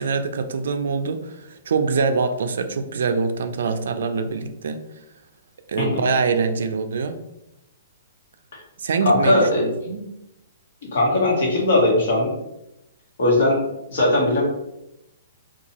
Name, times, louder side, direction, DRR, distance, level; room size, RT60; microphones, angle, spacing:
voice 1, 0.0-4.8 5.7-7.2 8.8-10.1, right 4 dB, 75° right, 8 dB, 0.3 m, -24 dB
voice 2, 9.0-9.7 10.9-12.3 13.2-13.6 13.9-14.4, left 1 dB, 60° left, -2 dB, 1.0 m, -19 dB
2.7 x 2.3 x 2.8 m, 0.88 s
hypercardioid pair, 170°, 0 cm